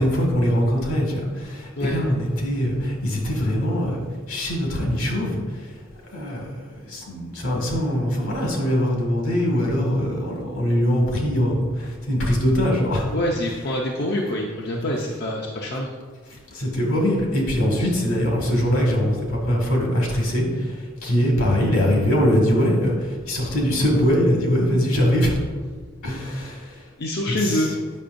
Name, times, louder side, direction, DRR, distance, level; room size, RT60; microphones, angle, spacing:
voice 1, 0.0-4.0 4.3-5.7 6.1-13.1 16.3-25.3 26.0-26.8 27.4-27.7, equal, 80° left, -1 dB, 1.8 m, -22 dB
voice 2, 13.1-15.9 17.8-17.9 23.4-23.5 27.0-27.7, left 1 dB, 50° left, -1 dB, 0.6 m, -25 dB
8.4 x 5.9 x 2.6 m, 1.5 s
head